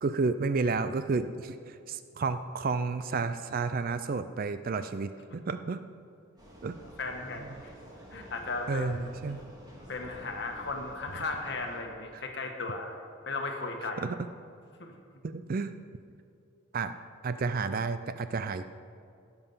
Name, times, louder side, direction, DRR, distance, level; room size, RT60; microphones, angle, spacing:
voice 1, 0.0-5.8 6.6-6.8 8.7-9.4 12.1-12.2 14.0-14.2 15.2-15.7 16.7-16.9 17.2-18.6, right 4 dB, 45° right, 11 dB, 0.4 m, -31 dB
Vehicle, 6.4-11.8, equal, 20° right, 2.3 m, -50 dB
voice 2, 7.0-7.7 8.1-9.1 9.9-13.0 13.3-14.1 14.8-14.9, left 3 dB, 60° left, 3 dB, 1.4 m, -36 dB
16.5 x 7.0 x 5.5 m, 2.4 s
head